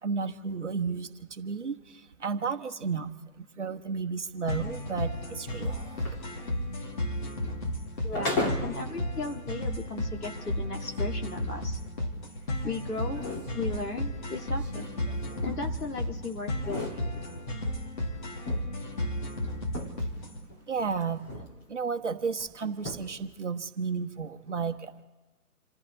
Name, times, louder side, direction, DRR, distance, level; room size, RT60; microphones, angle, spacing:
voice 1, 0.0-5.8 6.1-6.2 20.0-20.1 20.7-21.3 21.7-25.0, right 5 dB, 50° right, 5 dB, 1.3 m, -33 dB
sound 1, 4.5-20.4, left 1 dB, 30° left, 2.3 m, -34 dB
sound 2, 5.4-8.9 9.3-9.4 10.0-10.1 10.6-16.1 16.4-17.7 18.1-20.2 20.5-21.6 21.9-22.0 22.4-22.5 22.7-23.3, left 2 dB, 15° left, 1.8 m, -38 dB
voice 2, 8.0-11.8 12.6-13.2 13.5-14.9 15.4-17.0, left 3 dB, 80° left, 2 dB, 2.3 m, -36 dB
28.5 x 15.0 x 3.1 m, 1.2 s
figure-of-eight pair, 145°, 45 cm